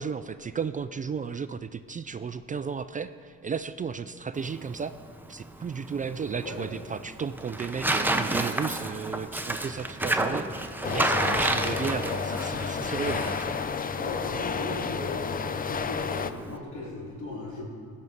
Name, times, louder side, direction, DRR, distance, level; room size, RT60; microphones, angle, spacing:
voice 1, 0.0-4.9 5.3-13.6, right 6 dB, 25° right, 12 dB, 0.3 m, -34 dB
Tearing, 4.3-16.6, right 1 dB, 5° right, 0.7 m, -31 dB
voice 2, 6.4-6.8 13.9-17.6, left 2 dB, 70° left, -4 dB, 3.9 m, -37 dB
sound 1, 10.8-16.3, left 6 dB, 30° left, 0.5 m, -31 dB
16.0 x 5.5 x 7.7 m, 2.1 s
cardioid pair, 90°, 30 cm